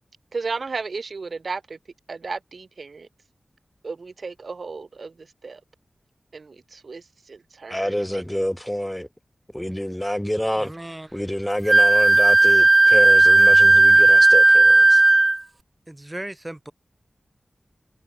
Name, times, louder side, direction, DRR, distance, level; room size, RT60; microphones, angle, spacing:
voice 1, 0.3-1.8 2.1-3.1 3.8-5.1 5.4-5.6 6.3-7.0 7.3-8.2, right 4 dB, 70° right, 2.2 m, -34 dB
voice 2, 7.7-9.1 9.5-10.7 11.1-15.0, equal, 10° left, 1.9 m, -27 dB
voice 3, 10.6-11.1 15.9-16.7, right 1 dB, 20° right, 5.4 m, -36 dB
Wind instrument woodwind instrument, 11.7-15.4, right 2 dB, 45° right, 0.4 m, -14 dB
cardioid pair, 45°, 0 cm